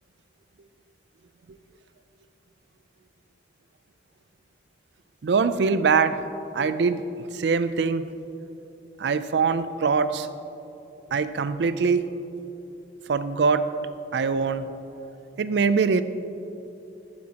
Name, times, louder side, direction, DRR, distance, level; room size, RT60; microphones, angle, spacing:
voice 1, 5.2-6.2 6.5-7.0 7.3-8.1 9.0-10.3 11.1-12.0 13.1-13.7 14.1-14.7 15.4-16.0, right 5 dB, 70° right, 13 dB, 0.4 m, -23 dB
14.5 x 8.4 x 2.9 m, 2.9 s
head